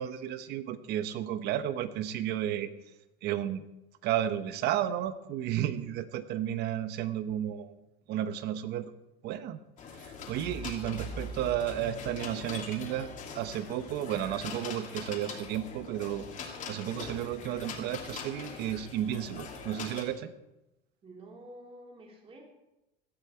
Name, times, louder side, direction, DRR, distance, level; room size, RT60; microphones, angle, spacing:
voice 1, 0.0-2.7 3.2-3.6 4.0-7.7 8.1-8.9 9.2-9.6 10.0-13.1 13.3-16.3 16.6-20.3, right 11 dB, 50° right, 13 dB, 1.0 m, -33 dB
voice 2, 5.5-5.8 21.0-22.4, right 1 dB, 25° right, 1 dB, 3.2 m, -50 dB
sound 1, 9.8-20.0, left 4 dB, 40° left, 2.7 m, -42 dB
17.0 x 12.0 x 4.5 m, 0.94 s
cardioid pair, 145°, 21 cm